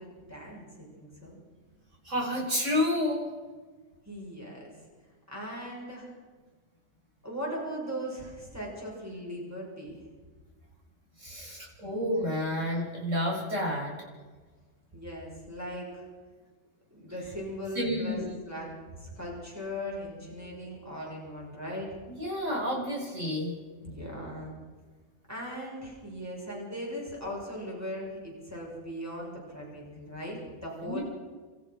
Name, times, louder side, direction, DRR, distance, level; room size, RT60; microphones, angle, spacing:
voice 1, 0.0-1.4 4.0-4.7 5.3-6.1 7.2-10.0 14.9-16.1 16.9-18.2 18.4-21.9 23.8-24.5 25.3-31.0, equal, 10° right, -4 dB, 6.4 m, -39 dB
voice 2, 2.0-3.3 11.2-13.9 17.7-18.3 22.2-23.5 30.8-31.0, left 1 dB, 80° right, -3 dB, 6.6 m, -30 dB
29.5 x 14.5 x 6.2 m, 1.4 s
omnidirectional pair, 1.3 m